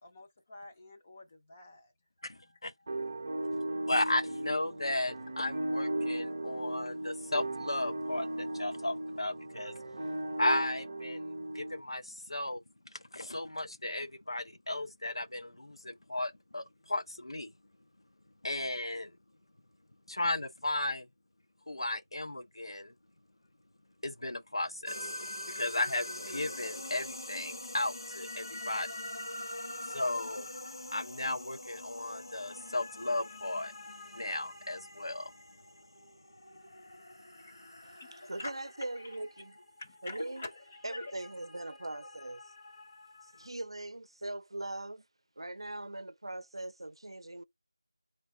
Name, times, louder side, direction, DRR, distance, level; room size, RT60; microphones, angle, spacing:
voice 1, 0.0-1.9 2.2-3.9 37.4-38.5 38.8-39.4 39.8-41.2, left 2 dB, 15° left, 0.5 m, -48 dB
voice 2, 2.2-2.7 3.5-3.6 3.9-17.5 18.4-19.2 20.1-21.1 21.7-23.0 24.0-25.1 25.4-28.9 29.8-30.5 30.9-33.7 34.1-35.6 36.0-36.1, left 2 dB, 85° left, 0.7 m, -35 dB
sound 1, 2.9-11.8, right 1 dB, 30° right, 0.7 m, -37 dB
sound 2, 24.9-43.5, left 1 dB, 60° left, 1.1 m, -45 dB
voice 3, 38.3-39.5 40.0-40.4 40.8-42.4 43.2-45.0 45.4-47.4, right 2 dB, 85° right, 0.5 m, -40 dB
3.5 x 3.3 x 3.3 m
figure-of-eight pair, 175°, 3 cm